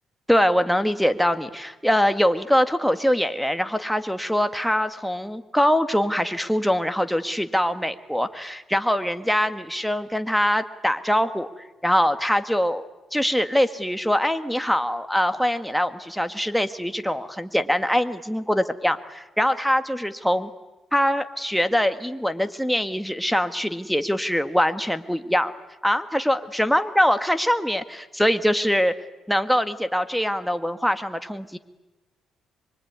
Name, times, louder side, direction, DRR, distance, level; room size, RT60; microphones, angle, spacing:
voice 1, 0.3-11.5 11.8-12.8 13.1-20.5 20.9-25.5 25.8-28.9 29.3-31.6, equal, ahead, 8 dB, 1.7 m, -23 dB
24.5 x 24.0 x 9.6 m, 1.0 s
cardioid pair, 90°, 0 cm